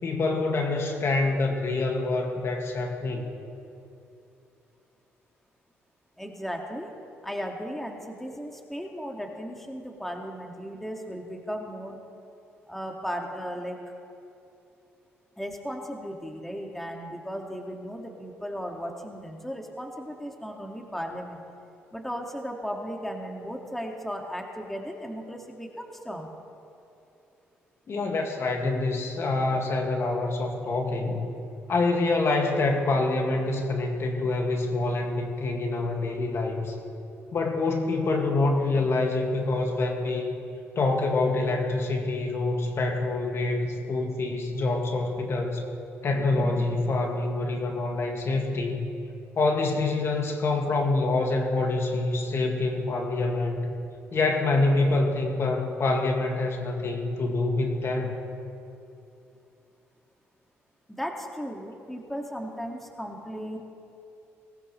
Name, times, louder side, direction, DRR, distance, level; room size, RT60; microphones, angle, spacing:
voice 1, 0.0-3.2 27.9-31.3 31.7-36.8 37.3-40.3 40.7-45.7 46.0-48.9 49.4-53.7 54.1-58.1, left 2 dB, 50° left, 2 dB, 2.0 m, -26 dB
voice 2, 6.2-6.9 7.2-12.0 12.7-13.8 15.4-21.4 21.9-26.3 60.9-63.6, equal, 5° left, 1 dB, 2.0 m, -36 dB
19.5 x 18.0 x 3.2 m, 2.7 s
supercardioid pair, 65°, 6 cm